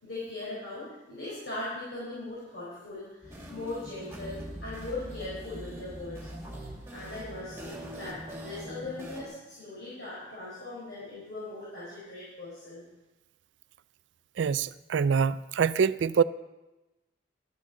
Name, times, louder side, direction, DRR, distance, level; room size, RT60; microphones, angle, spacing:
voice 1, 0.0-6.3 6.9-12.8, left 2 dB, 70° left, -9 dB, 4.6 m, -39 dB
sound 1, 3.2-9.3, equal, 15° right, 2.2 m, -42 dB
voice 2, 14.4-16.2, right 6 dB, 90° right, 16 dB, 0.4 m, -25 dB
13.0 x 7.2 x 5.8 m, 1.1 s
head